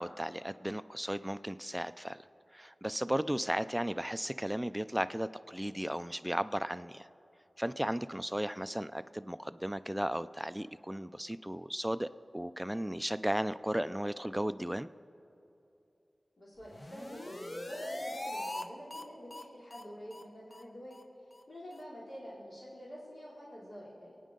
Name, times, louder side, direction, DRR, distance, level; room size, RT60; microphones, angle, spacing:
voice 1, 0.0-2.3 2.5-7.1 7.6-14.9, equal, 10° right, 13 dB, 0.3 m, -35 dB
voice 2, 16.4-21.0 21.5-24.1, equal, 65° left, -6 dB, 2.9 m, -47 dB
sound 1, 16.6-18.6 18.9-19.0 19.3-19.4 19.7-19.8 20.1-20.2 20.5-20.6 20.9-21.0 21.3-21.4 21.7-21.8, left 1 dB, 40° left, 0.8 m, -41 dB
24.5 x 9.2 x 3.8 m, 2.8 s
wide cardioid pair, 65°, 0 cm